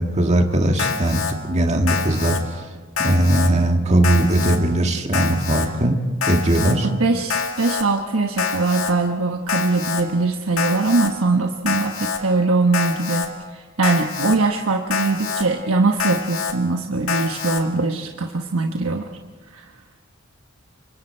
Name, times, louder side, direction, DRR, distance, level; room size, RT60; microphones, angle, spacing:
voice 1, 0.0-2.4 3.0-6.0 6.3-6.9, right 1 dB, 35° right, 3 dB, 1.8 m, -19 dB
Alarm, 0.8-1.3 1.9-2.4 3.0-3.5 4.0-4.6 5.1-5.7 6.2-6.7 7.3-7.8 8.4-8.9 9.5-10.0 10.6-11.1 11.7-12.2 12.7-13.3 13.8-14.4 14.9-15.4 16.0-16.5 17.1-17.6, left 5 dB, 90° left, 2.1 m, -25 dB
voice 2, 6.8-19.0 19.5-19.7, right 3 dB, 80° right, 3 dB, 1.1 m, -21 dB
28.5 x 25.0 x 4.5 m, 1.4 s
head